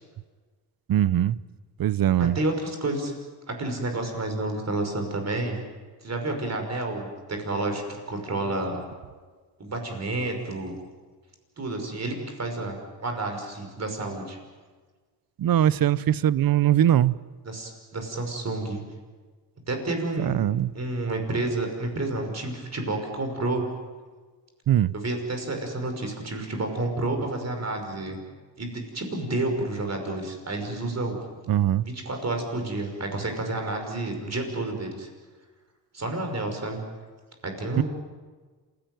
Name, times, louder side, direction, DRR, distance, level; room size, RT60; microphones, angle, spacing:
voice 1, 0.9-1.4 1.8-2.4 15.4-17.1 20.2-20.7 24.7-24.9 31.5-31.8 37.7-37.8, right 11 dB, 55° right, 19 dB, 0.7 m, -21 dB
voice 2, 2.2-3.1 3.5-5.6 6.0-8.8 9.6-10.8 11.6-14.4 17.5-18.8 19.7-20.3 20.7-23.7 24.9-28.2 28.6-31.2 31.9-35.1 35.9-36.8 37.4-37.8, right 2 dB, 40° right, 4 dB, 5.6 m, -30 dB
27.0 x 16.5 x 9.2 m, 1.4 s
cardioid pair, 95°, 41 cm